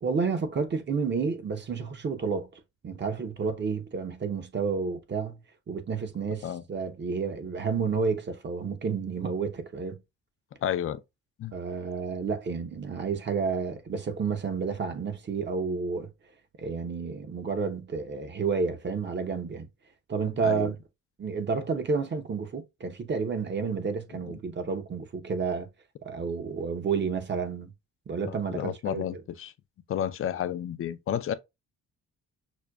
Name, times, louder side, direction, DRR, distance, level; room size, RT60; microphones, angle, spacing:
voice 1, 0.0-5.4 5.7-10.0 11.5-16.1 16.6-19.7 20.1-20.7 21.2-25.7 26.0-27.7 28.1-29.2, right 5 dB, 35° right, 0.8 m, -30 dB
voice 2, 10.6-11.0 11.4-11.5 20.4-20.7 28.3-29.5 29.9-31.3, left 10 dB, 45° left, 0.4 m, -31 dB
6.1 x 2.2 x 2.3 m
cardioid pair, 90°, 30 cm